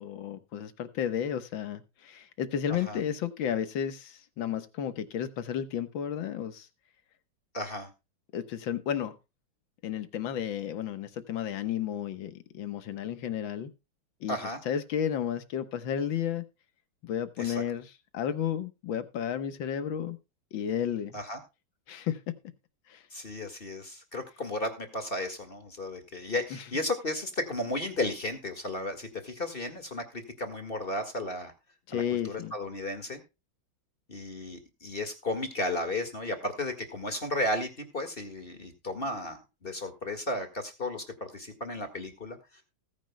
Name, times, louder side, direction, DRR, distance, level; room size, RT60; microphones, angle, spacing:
voice 1, 0.0-6.7 8.3-9.1 9.8-13.7 14.2-14.4 14.7-16.5 17.0-20.2 20.5-21.2 21.9-22.3 22.9-23.0 26.5-26.6 31.9-32.5, left 9 dB, 70° left, 11 dB, 1.9 m, -32 dB
voice 2, 7.5-7.9 14.3-14.6 17.4-17.6 21.1-21.4 23.1-31.5 31.9-33.2 34.1-42.4, left 1 dB, 30° left, 7 dB, 1.8 m, -34 dB
19.5 x 9.7 x 2.2 m, 0.27 s
omnidirectional pair, 2.3 m